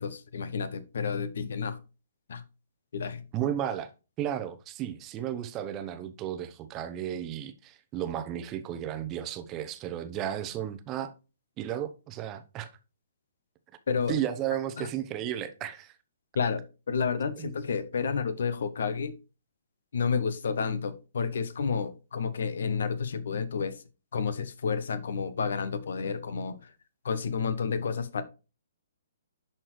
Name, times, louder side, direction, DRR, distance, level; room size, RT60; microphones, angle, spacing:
voice 1, 0.0-1.8 2.3-2.4 2.9-3.3 13.9-14.2 14.8-14.9 16.3-19.2 19.9-23.8 24.1-26.7 27.0-28.2, left 5 dB, 60° left, 0.9 m, -30 dB
voice 2, 3.3-3.9 4.2-11.1 11.6-12.7 14.1-15.9 17.4-17.5, right 10 dB, 25° right, 0.8 m, -33 dB
11.0 x 4.5 x 3.1 m
figure-of-eight pair, 125°, 0 cm